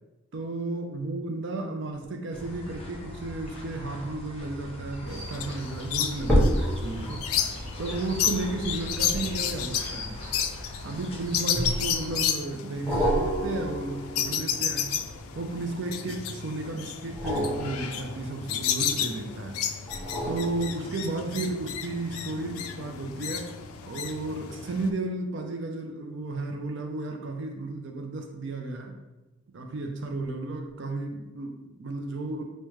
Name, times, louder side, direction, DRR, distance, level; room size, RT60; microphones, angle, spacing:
voice 1, 0.3-7.2 7.8-10.2 10.8-14.9 15.3-19.6 20.3-23.5 23.8-29.0 29.5-32.4, right 2 dB, 60° right, 3 dB, 0.4 m, -33 dB
sound 1, 2.3-12.3, left 1 dB, 30° left, 0.5 m, -40 dB
sound 2, 5.1-24.9, left 8 dB, 85° left, 0.3 m, -32 dB
sound 3, 6.3-10.9 11.6-12.2 12.9-15.8 17.0-19.1 19.9-21.3 21.8-21.9, equal, 5° left, 0.8 m, -31 dB
4.9 x 2.1 x 3.1 m, 1.1 s
head